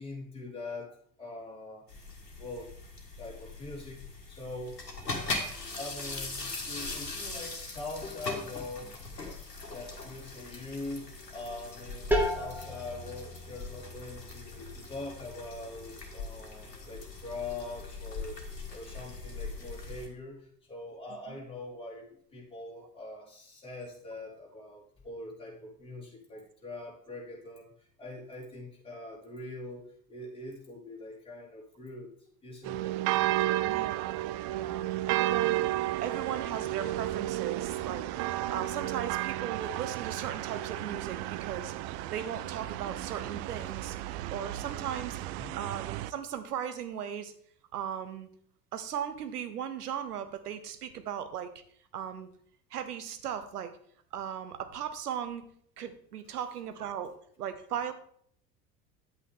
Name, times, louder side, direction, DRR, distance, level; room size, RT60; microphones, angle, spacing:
voice 1, 0.0-1.8 2.4-2.7 3.2-4.0 4.3-4.8 5.8-8.9 9.7-18.4 18.7-32.1 32.4-32.8 45.4-45.6, left 2 dB, 10° left, -5 dB, 4.8 m, -43 dB
sound 1, 1.9-20.1, left 3 dB, 85° left, 1.7 m, -41 dB
sound 2, 12.1-17.6, equal, 5° right, 2.0 m, -36 dB
sound 3, 32.6-46.1, right 15 dB, 45° right, 0.5 m, -32 dB
voice 2, 33.6-35.6 36.0-45.2 45.5-47.3 47.7-48.3 48.7-51.5 51.9-52.3 52.7-53.8 54.1-55.5 55.8-57.1 57.4-57.9, right 9 dB, 70° right, 10 dB, 1.2 m, -37 dB
10.0 x 8.4 x 3.6 m, 0.63 s
figure-of-eight pair, 70°, 48 cm